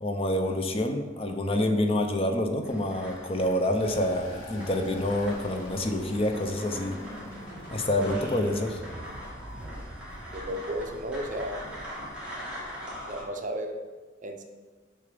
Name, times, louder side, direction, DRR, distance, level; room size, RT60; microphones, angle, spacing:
voice 1, 0.0-7.0 7.7-8.8, left 1 dB, 30° left, 5 dB, 0.6 m, -27 dB
sound 1, 2.6-13.2, equal, 5° right, 2.2 m, -42 dB
sound 2, 3.8-12.3, equal, 50° left, 2.6 m, -43 dB
voice 2, 10.3-11.7 13.0-13.8 14.2-14.4, right 1 dB, 40° right, 5 dB, 0.7 m, -34 dB
6.8 x 5.8 x 5.1 m, 1.3 s
head